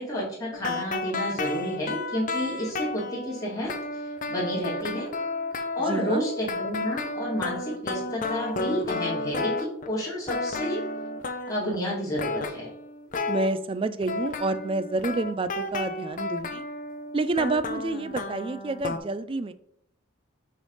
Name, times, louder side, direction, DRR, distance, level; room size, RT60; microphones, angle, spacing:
voice 1, 0.0-5.1 5.8-10.8 11.5-12.7, equal, 15° left, -7 dB, 2.4 m, -31 dB
sound 1, 0.5-10.0 10.3-11.8 12.2-13.5 14.0-19.0, left 3 dB, 40° left, 0.6 m, -32 dB
voice 2, 5.9-6.3 13.3-16.6 17.1-19.5, right 3 dB, 25° right, 13 dB, 0.3 m, -28 dB
6.1 x 3.3 x 5.5 m, 0.72 s
head